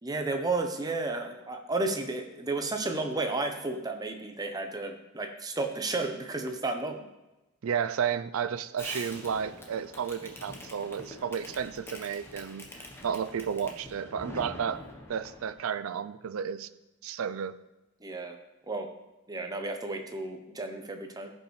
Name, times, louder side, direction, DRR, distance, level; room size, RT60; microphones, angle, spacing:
voice 1, 0.0-7.1 18.0-18.4 18.7-18.9 19.3-21.3, right 3 dB, 15° right, 4 dB, 0.7 m, -32 dB
voice 2, 7.6-14.8 15.1-16.7 17.0-17.6, right 7 dB, 70° right, 14 dB, 0.4 m, -32 dB
Fireworks, 8.8-15.6, left 1 dB, 10° left, 1.0 m, -45 dB
14.5 x 5.5 x 3.2 m, 1.0 s
head